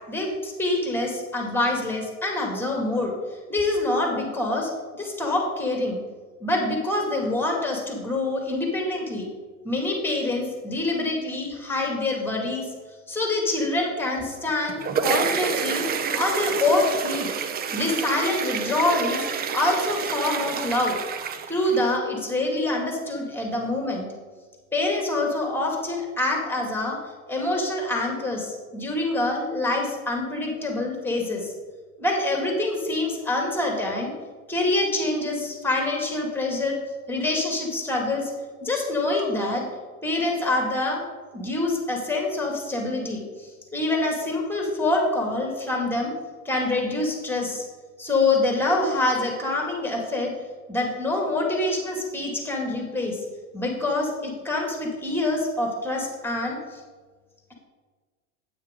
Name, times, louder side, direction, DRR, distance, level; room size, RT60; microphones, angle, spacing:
voice 1, 0.1-3.1 3.5-6.0 6.4-9.3 9.6-12.7 13.1-15.8 16.1-17.3 17.7-21.0 21.5-24.1 24.7-27.0 27.3-31.5 32.0-34.1 34.5-36.8 37.1-38.3 38.6-39.6 40.0-41.0 41.3-46.1 46.5-47.6 48.0-50.3 50.7-53.2 53.5-56.8, left 2 dB, 5° left, 1 dB, 2.3 m, -26 dB
sound 1, 14.5-22.0, right 6 dB, 25° right, 0.6 m, -28 dB
9.4 x 8.7 x 3.8 m, 1.4 s
supercardioid pair, 115°, 41 cm